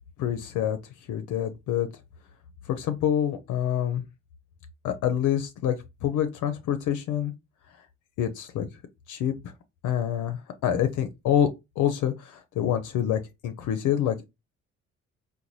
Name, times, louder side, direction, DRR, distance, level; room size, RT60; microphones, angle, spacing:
voice 1, 0.2-0.8 1.1-1.9 2.7-4.0 4.8-5.8 6.0-7.3 8.2-8.7 9.1-9.3 9.8-11.5 11.8-14.2, left 10 dB, 80° left, 0.5 m, -26 dB
3.9 x 2.2 x 2.9 m
cardioid pair, 90°, 30 cm